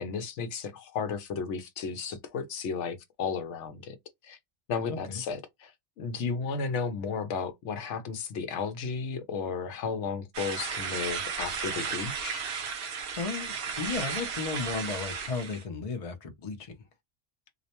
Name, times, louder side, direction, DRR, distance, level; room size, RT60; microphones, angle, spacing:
voice 1, 0.0-4.0 4.2-4.4 4.7-12.4, left 5 dB, 75° left, 0.9 m, -34 dB
sound 1, 10.3-15.6, right 6 dB, 60° right, 0.7 m, -34 dB
voice 2, 13.2-16.7, left 4 dB, 40° left, 0.5 m, -34 dB
2.4 x 2.1 x 2.8 m
omnidirectional pair, 1.2 m